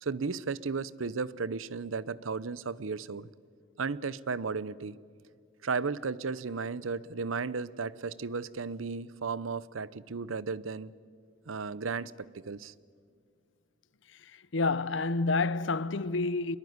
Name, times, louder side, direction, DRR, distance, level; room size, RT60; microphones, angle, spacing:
voice 1, 0.0-3.3 3.8-5.0 5.6-10.9 11.5-12.7, right 4 dB, 90° right, 0.7 m, -34 dB
voice 2, 14.2-16.6, left 3 dB, 70° left, 0.7 m, -29 dB
24.0 x 21.5 x 9.5 m
head